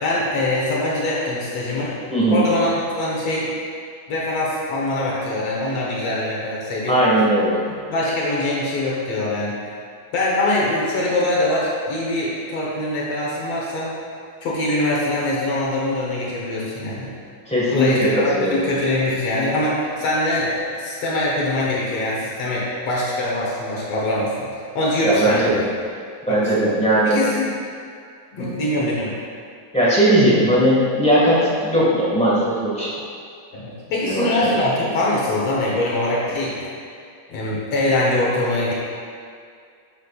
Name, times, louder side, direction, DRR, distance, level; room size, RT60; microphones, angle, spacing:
voice 1, 0.0-2.0 2.3-3.5 4.1-7.0 7.9-9.5 10.1-14.0 14.4-17.1 17.7-25.6 26.3-26.7 27.1-27.5 28.3-29.2 33.5-36.7 37.3-38.7, left 1 dB, 60° left, -5 dB, 2.1 m, -23 dB
voice 2, 2.1-2.4 6.9-7.6 17.5-17.9 18.3-18.6 25.0-25.6 26.3-27.2 28.4-28.6 29.7-32.9 34.0-34.3, right 1 dB, 5° left, -9 dB, 0.5 m, -18 dB
10.0 x 7.6 x 2.4 m, 2.2 s
omnidirectional pair, 3.5 m